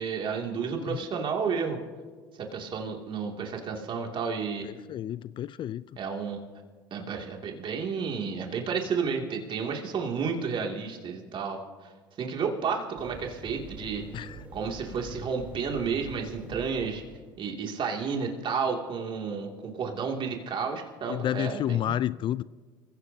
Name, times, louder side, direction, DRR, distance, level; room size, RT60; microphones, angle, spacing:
voice 1, 0.0-1.8 2.4-4.7 6.0-6.4 6.9-11.9 12.2-14.0 14.5-17.0 17.4-22.0, right 5 dB, 45° right, 2 dB, 2.5 m, -31 dB
voice 2, 4.6-5.8 14.1-14.4 21.1-22.4, left 11 dB, 45° left, 19 dB, 0.4 m, -30 dB
sound 1, 13.0-17.4, right 2 dB, 10° right, 3.5 m, -45 dB
27.0 x 16.0 x 2.8 m, 1.5 s
hypercardioid pair, 75°, 11 cm